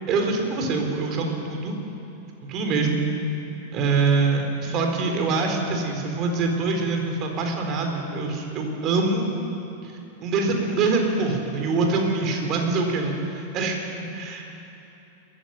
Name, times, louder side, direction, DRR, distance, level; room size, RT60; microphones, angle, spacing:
voice 1, 0.1-1.7 2.5-3.0 3.7-9.3 9.8-9.9 10.2-13.8 14.1-14.5, right 3 dB, 35° right, 3 dB, 4.2 m, -24 dB
22.0 x 15.0 x 9.3 m, 2.9 s
figure-of-eight pair, 90°, 0 cm